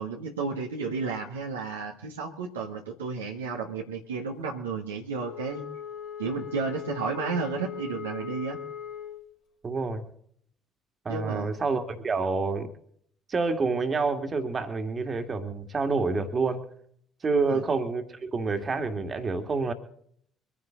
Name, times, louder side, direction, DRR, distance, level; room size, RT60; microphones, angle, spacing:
voice 1, 0.0-5.6 6.2-8.6 11.1-11.5 17.3-17.6, right 5 dB, 80° right, 0 dB, 1.6 m, -32 dB
Wind instrument woodwind instrument, 5.1-9.3, left 8 dB, 65° left, 2.9 m, -39 dB
voice 2, 9.6-10.0 11.0-12.7 13.3-16.7 17.2-19.7, right 4 dB, 35° right, 6 dB, 2.3 m, -28 dB
24.0 x 10.5 x 3.9 m, 0.65 s
figure-of-eight pair, 45°, 0 cm